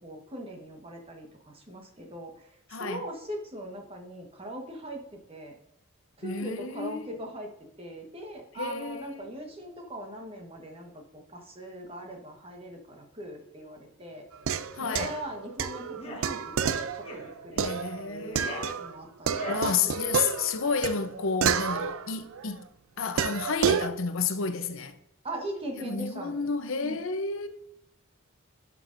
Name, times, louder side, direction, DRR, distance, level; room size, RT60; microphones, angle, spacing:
voice 1, 0.0-5.5 6.2-7.5 7.8-14.2 15.0-16.9 17.1-19.5 25.2-26.5 26.8-27.0, right 1 dB, 25° right, 1.3 m, -40 dB
voice 2, 2.7-3.0 6.2-7.2 8.5-9.3 14.8-15.1 17.5-18.8 19.5-22.7 23.0-25.0 25.8-27.5, left 5 dB, 65° left, 0.7 m, -31 dB
sound 1, 14.3-18.9 19.3-22.5 23.2-23.9, right 7 dB, 75° right, 0.4 m, -30 dB
sound 2, 14.7-15.2 15.9-16.3 17.0-17.3 18.1-18.7 19.3-19.7, left 1 dB, 25° left, 1.3 m, -40 dB
11.5 x 6.0 x 2.6 m
head